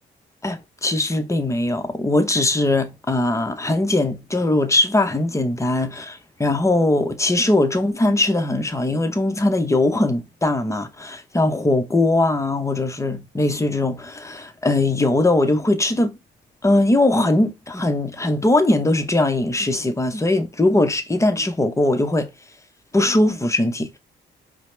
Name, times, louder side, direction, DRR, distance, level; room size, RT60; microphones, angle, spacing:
voice 1, 0.4-16.1 16.6-22.3 22.9-24.0, left 2 dB, 15° left, 0.7 m, -20 dB
4.7 x 2.0 x 3.2 m
cardioid pair, 90°, 20 cm